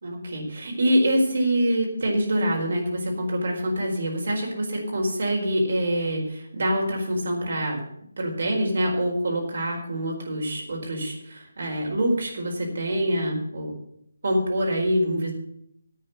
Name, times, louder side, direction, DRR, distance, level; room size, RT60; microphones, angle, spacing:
voice 1, 0.0-7.8 8.2-13.7 14.2-15.3, equal, 60° right, 0 dB, 4.6 m, -25 dB
10.5 x 8.6 x 8.0 m, 0.71 s
figure-of-eight pair, 155°, 0 cm